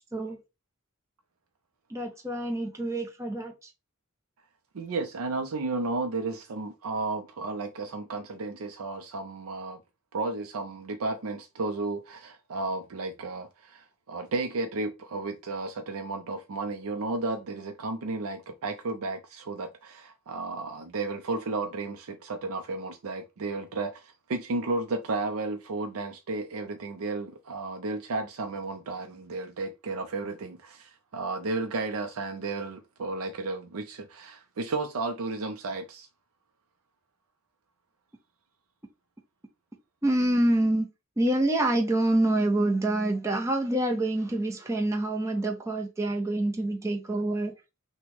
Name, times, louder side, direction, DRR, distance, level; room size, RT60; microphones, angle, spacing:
voice 1, 1.9-3.7 40.0-40.9 41.2-47.5, right 1 dB, 15° right, 0.6 m, -26 dB
voice 2, 4.7-9.8 10.1-36.1, right 3 dB, 80° right, 0.5 m, -33 dB
5.9 x 2.2 x 3.4 m
head